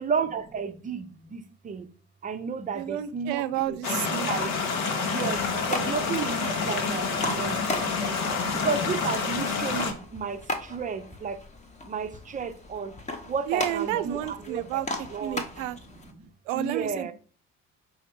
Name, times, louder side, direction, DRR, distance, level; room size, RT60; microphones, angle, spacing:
voice 1, 0.0-1.9 2.2-7.8 8.5-11.4 11.8-13.0 13.3-14.8 15.1-15.4 16.2-17.1, right 5 dB, 20° right, 0.5 m, -33 dB
voice 2, 2.7-4.3 13.5-14.9 15.2-15.8 16.5-17.1, right 13 dB, 70° right, 0.5 m, -30 dB
sound 1, 3.8-9.9, left 4 dB, 75° left, 0.8 m, -28 dB
sound 2, 5.3-16.1, left 2 dB, 15° left, 0.8 m, -38 dB
5.1 x 2.1 x 4.3 m
figure-of-eight pair, 50°, 42 cm